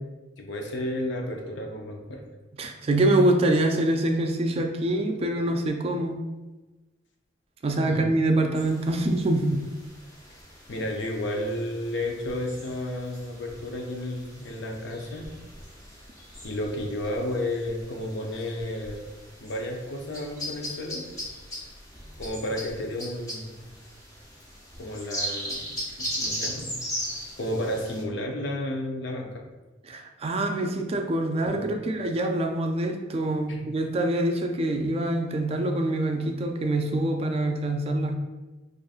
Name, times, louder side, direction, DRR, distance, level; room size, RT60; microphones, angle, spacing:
voice 1, 0.4-2.2 7.9-8.1 10.7-15.3 16.4-19.0 19.4-21.1 22.2-23.7 24.8-25.6 26.0-26.7 27.4-29.4 31.4-31.7 33.5-33.6, left 1 dB, 65° left, 1 dB, 0.6 m, -32 dB
voice 2, 2.6-6.2 7.6-9.6 29.8-38.1, right 1 dB, 30° right, 4 dB, 0.3 m, -25 dB
sound 1, 8.5-28.0, equal, 20° left, 0.6 m, -39 dB
4.9 x 2.5 x 2.4 m, 1.1 s
head